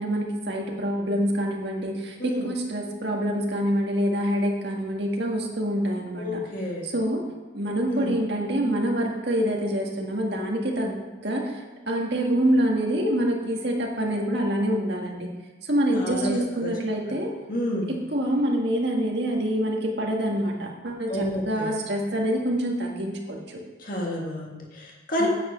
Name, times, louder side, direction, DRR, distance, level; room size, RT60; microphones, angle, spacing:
voice 1, 0.0-6.4 6.8-7.2 7.5-15.3 15.7-17.3 17.9-23.6 25.2-25.3, right 1 dB, 60° right, 0 dB, 1.7 m, -26 dB
voice 2, 6.2-6.9 7.9-8.1 15.9-16.3 16.6-16.7 17.5-17.9 21.1-21.8 23.8-25.3, left 1 dB, 45° left, -1 dB, 1.7 m, -30 dB
9.3 x 8.1 x 5.2 m, 1.2 s
head